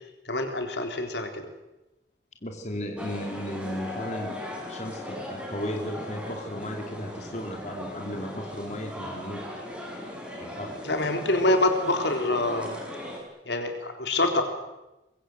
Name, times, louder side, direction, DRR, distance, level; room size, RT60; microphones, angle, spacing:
voice 1, 0.3-1.5 10.8-12.8 13.5-14.4, left 2 dB, 80° left, 5 dB, 3.7 m, -26 dB
voice 2, 2.4-4.4 4.7-9.4 10.4-10.8, equal, 40° left, 3 dB, 2.7 m, -35 dB
sound 1, 3.0-13.2, left 1 dB, 5° right, 5.5 m, -38 dB
24.0 x 22.0 x 8.0 m, 0.97 s
head